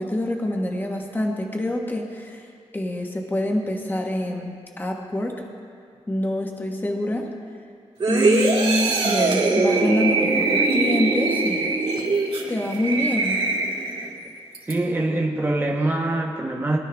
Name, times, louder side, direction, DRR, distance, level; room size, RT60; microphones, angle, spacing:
voice 1, 0.0-2.5 2.7-5.5 6.1-7.3 8.1-11.7 12.5-13.4, left 1 dB, 15° left, 1 dB, 1.2 m, -26 dB
sound 1, 8.0-14.1 14.5-14.7, right 3 dB, 55° right, 2.4 m, -22 dB
voice 2, 14.7-16.8, right 2 dB, 20° right, -2 dB, 1.1 m, -24 dB
22.5 x 12.0 x 3.5 m, 2.3 s
wide cardioid pair, 160°, 11 cm